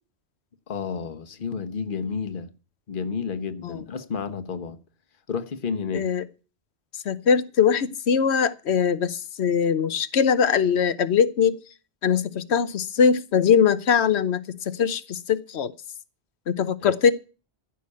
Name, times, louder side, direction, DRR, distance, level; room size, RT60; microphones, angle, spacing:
voice 1, 0.7-2.5 2.9-4.8 5.3-6.1 16.8-16.9, left 5 dB, 50° left, 1.2 m, -31 dB
voice 2, 5.9-6.2 7.0-11.6 12.0-15.7 16.5-17.1, left 7 dB, 80° left, 1.1 m, -22 dB
15.0 x 6.0 x 8.3 m
omnidirectional pair, 1.1 m